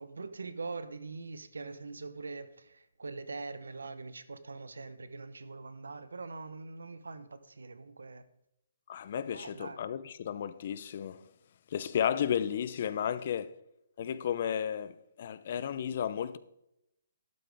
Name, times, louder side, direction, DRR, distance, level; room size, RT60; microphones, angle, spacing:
voice 1, 0.0-8.3 9.1-9.8, right 3 dB, 85° right, 0.8 m, -43 dB
voice 2, 8.9-11.3 11.7-13.5 14.0-16.4, left 9 dB, 50° left, 0.6 m, -33 dB
12.0 x 8.9 x 3.5 m
hypercardioid pair, 145°, 0 cm